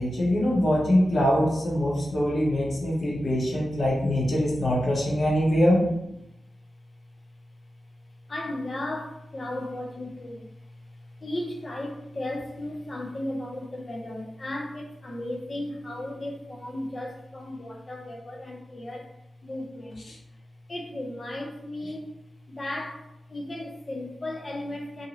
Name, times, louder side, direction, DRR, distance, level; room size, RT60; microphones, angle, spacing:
voice 1, 0.0-5.8, equal, 50° left, -3 dB, 0.9 m, -23 dB
voice 2, 2.6-3.3 3.7-3.8 8.3-10.5 11.2-19.1 19.4-20.0 20.7-22.2 22.5-25.1, left 1 dB, 35° left, 2 dB, 0.4 m, -35 dB
2.6 x 2.6 x 2.9 m, 0.84 s
wide cardioid pair, 135°, 0 cm